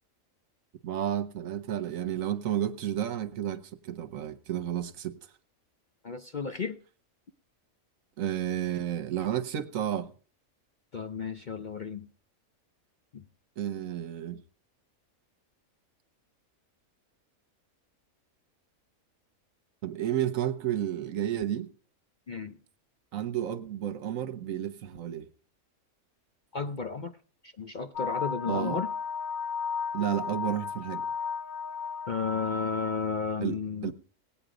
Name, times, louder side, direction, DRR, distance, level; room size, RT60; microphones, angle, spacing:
voice 1, 0.8-5.1 8.2-10.1 13.6-14.4 19.8-21.7 23.1-25.3 28.5-28.8 29.9-31.1 33.4-33.9, right 11 dB, 70° right, 1.3 m, -31 dB
voice 2, 6.0-6.8 10.9-12.1 13.1-13.2 22.3-22.6 26.5-27.1 27.4-28.9 32.1-33.9, left 5 dB, 50° left, 0.6 m, -33 dB
sound 1, 28.0-32.9, left 6 dB, 90° left, 1.6 m, -34 dB
17.5 x 8.8 x 5.0 m
omnidirectional pair, 1.5 m